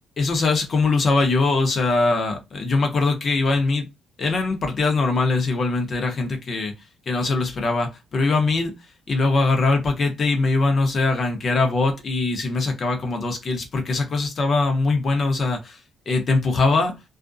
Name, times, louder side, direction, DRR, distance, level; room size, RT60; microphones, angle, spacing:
voice 1, 0.2-3.9 4.2-6.7 7.1-8.7 9.1-15.8 16.1-17.0, left 3 dB, 50° left, 0.8 m, -22 dB
2.4 x 2.1 x 2.5 m
cardioid pair, 90°, 0 cm